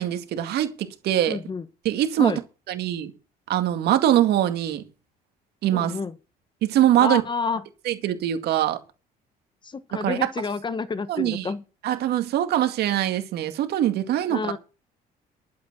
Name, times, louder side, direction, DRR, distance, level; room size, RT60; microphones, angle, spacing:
voice 1, 0.0-1.4 1.8-2.4 2.7-3.1 3.5-4.8 5.6-6.0 6.6-7.2 7.9-8.8 10.0-10.3 11.1-11.5 11.8-14.5, right 12 dB, 75° right, 2.1 m, -23 dB
voice 2, 1.3-1.6 2.2-2.4 5.7-6.1 7.0-7.6 9.6-11.6 14.3-14.6, left 4 dB, 30° left, 1.2 m, -29 dB
11.5 x 8.4 x 6.2 m
cardioid pair, 110°, 17 cm